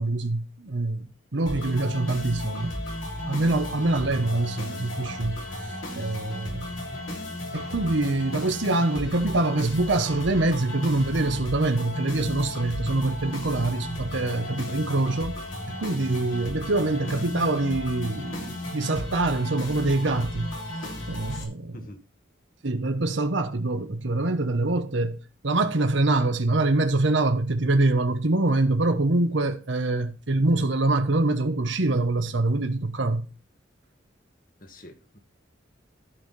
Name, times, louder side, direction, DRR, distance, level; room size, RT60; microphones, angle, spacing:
voice 1, 0.0-2.7 3.2-6.8 7.5-15.4 15.7-20.5 21.1-21.8 22.6-25.2 25.4-33.3, right 2 dB, 70° right, 1.1 m, -25 dB
sound 1, 1.5-21.4, left 1 dB, 75° left, 3.5 m, -34 dB
voice 2, 34.6-35.2, left 1 dB, 45° left, 1.6 m, -45 dB
13.5 x 5.6 x 4.2 m
head